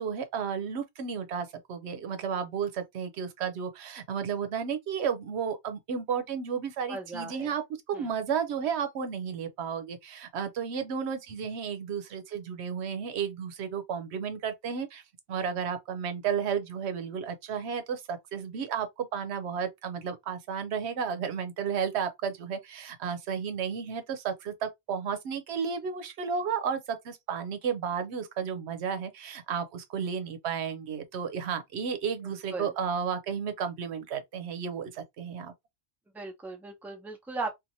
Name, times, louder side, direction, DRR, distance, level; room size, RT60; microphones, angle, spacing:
voice 1, 0.0-7.6 7.9-15.0 15.3-35.5, right 7 dB, 85° right, 0.9 m, -33 dB
voice 2, 6.9-7.6 7.9-8.1 32.2-32.7 36.1-37.5, right 3 dB, ahead, 0.6 m, -38 dB
2.6 x 2.4 x 2.7 m
omnidirectional pair, 1.1 m